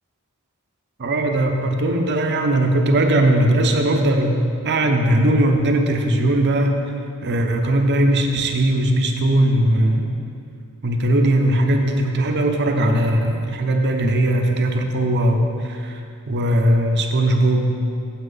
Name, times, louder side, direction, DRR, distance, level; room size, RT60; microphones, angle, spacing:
voice 1, 1.0-6.8 7.2-10.2 10.8-16.0 16.3-17.7, right 1 dB, 50° right, 4 dB, 0.8 m, -19 dB
8.6 x 8.1 x 3.9 m, 2.4 s
head